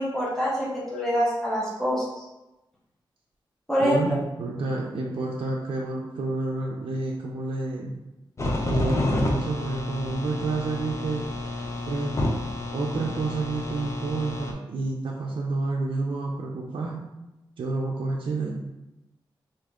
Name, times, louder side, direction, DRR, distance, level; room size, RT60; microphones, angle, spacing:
voice 1, 0.0-2.2 3.7-4.0, equal, 5° left, -8 dB, 1.2 m, -25 dB
voice 2, 3.8-8.0 8.6-11.3 11.9-12.4 12.7-17.0 17.6-18.6, right 3 dB, 85° right, -2 dB, 0.5 m, -29 dB
sound 1, 8.4-14.5, left 1 dB, 35° left, 0.6 m, -30 dB
3.6 x 2.7 x 3.6 m, 0.98 s
wide cardioid pair, 125°, 9 cm